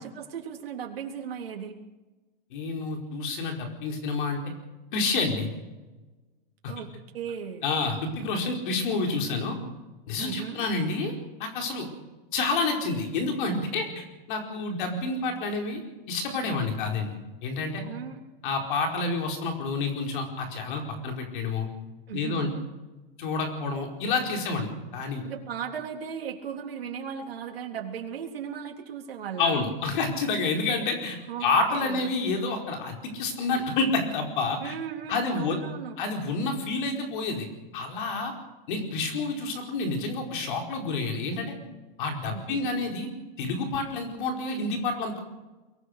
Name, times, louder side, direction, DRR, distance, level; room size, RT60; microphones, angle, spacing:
voice 1, 0.0-1.8 6.7-7.7 10.2-10.7 17.8-18.2 22.1-22.5 25.2-29.7 31.3-32.1 34.6-36.0 42.3-42.7, right 7 dB, 80° right, 1 dB, 3.5 m, -37 dB
voice 2, 2.5-4.4 4.9-5.5 6.6-6.7 7.6-9.6 10.1-11.1 11.4-11.9 12.3-15.8 16.1-17.1 17.4-17.8 18.4-21.7 22.1-22.5 23.2-24.7 24.9-25.2 29.4-34.7 35.1-35.6 36.0-37.5 37.7-38.3 38.7-41.5 42.0-43.1 43.4-45.2, left 3 dB, 60° left, 3 dB, 4.7 m, -29 dB
23.5 x 18.0 x 6.6 m, 1.1 s
hypercardioid pair, 145°, 29 cm